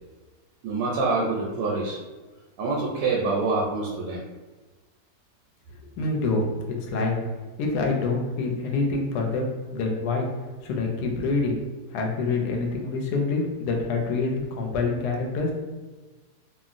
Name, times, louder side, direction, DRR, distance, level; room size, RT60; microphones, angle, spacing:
voice 1, 0.6-2.0 2.6-4.2, right 3 dB, 90° right, -3 dB, 1.2 m, -26 dB
voice 2, 5.9-7.1 7.6-10.3 10.6-11.6 11.9-15.5, left 3 dB, 80° left, 1 dB, 1.1 m, -26 dB
2.9 x 2.5 x 2.4 m, 1.2 s
omnidirectional pair, 1.8 m